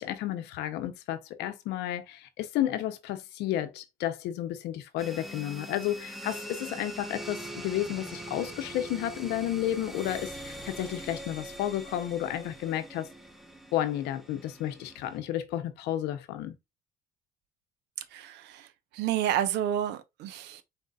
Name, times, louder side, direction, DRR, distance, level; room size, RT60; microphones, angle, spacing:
voice 1, 0.0-13.1 13.7-16.6, left 12 dB, 90° left, 0.8 m, -32 dB
sound 1, 5.0-15.2, right 1 dB, ahead, 0.7 m, -42 dB
voice 2, 18.1-20.6, right 10 dB, 85° right, 0.7 m, -30 dB
4.3 x 4.0 x 2.4 m
cardioid pair, 110°, 17 cm